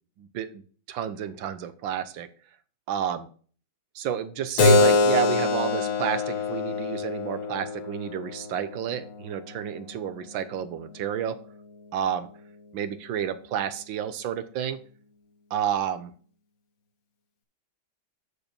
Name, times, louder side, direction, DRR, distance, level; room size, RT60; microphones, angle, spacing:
voice 1, 0.2-0.6 0.9-2.3 2.9-3.3 3.9-11.4 11.9-12.3 12.7-14.8 15.5-16.1, right 9 dB, 75° right, 12 dB, 1.5 m, -30 dB
Keyboard (musical), 4.6-9.7, left 3 dB, 55° left, 1.3 m, -24 dB
7.0 x 6.6 x 4.4 m, 0.42 s
omnidirectional pair, 2.2 m